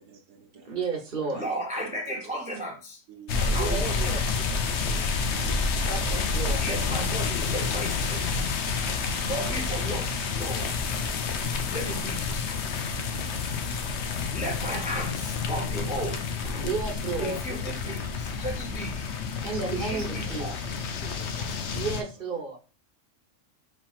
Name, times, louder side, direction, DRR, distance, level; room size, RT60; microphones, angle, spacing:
voice 1, 0.0-0.7 1.4-1.5 3.1-3.3 5.3-5.7 11.1-11.2 12.8-14.2, right 7 dB, 90° right, 2 dB, 1.2 m, -49 dB
voice 2, 0.5-1.4 3.5-4.2 5.8-6.6 16.4-17.4 19.3-20.6 21.7-22.6, right 4 dB, 45° right, 1 dB, 1.1 m, -32 dB
voice 3, 1.3-3.0 3.4-4.1 4.8-5.1 6.6-8.5 9.2-10.7 11.7-12.8 14.3-16.2 17.2-19.1 19.7-20.6 21.0-21.6, right 1 dB, 10° right, 1 dB, 0.6 m, -35 dB
sound 1, 3.3-22.0, left 4 dB, 65° left, 0.9 m, -29 dB
4.4 x 3.8 x 2.4 m, 0.33 s
omnidirectional pair, 1.3 m